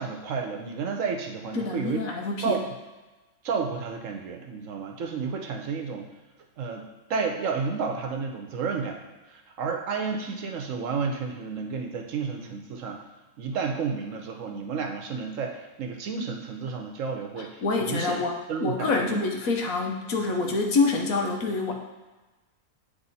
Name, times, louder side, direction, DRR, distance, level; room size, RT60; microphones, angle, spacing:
voice 1, 0.0-2.0 2.4-2.6 3.4-6.1 6.6-9.0 9.3-13.0 13.4-18.2 18.5-18.9, right 5 dB, 65° right, 3 dB, 1.1 m, -31 dB
voice 2, 1.5-2.5 17.6-21.7, left 3 dB, 75° left, 2 dB, 1.3 m, -26 dB
9.3 x 3.3 x 4.1 m, 1.2 s
omnidirectional pair, 1.5 m